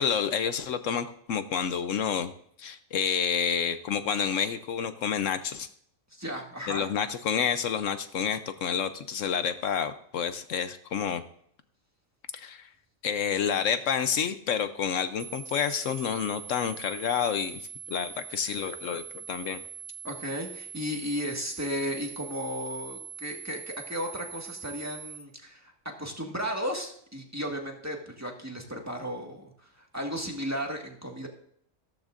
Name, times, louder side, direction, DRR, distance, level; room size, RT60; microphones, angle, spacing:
voice 1, 0.0-2.3 2.6-5.7 6.7-11.2 12.3-12.7 13.0-19.6, left 7 dB, 75° left, 10 dB, 1.0 m, -29 dB
voice 2, 6.1-6.9 20.0-31.3, equal, 10° right, 0 dB, 1.7 m, -35 dB
sound 1, 15.2-25.2, right 8 dB, 35° right, 1.4 m, -43 dB
15.0 x 13.5 x 2.5 m, 0.65 s
omnidirectional pair, 1.4 m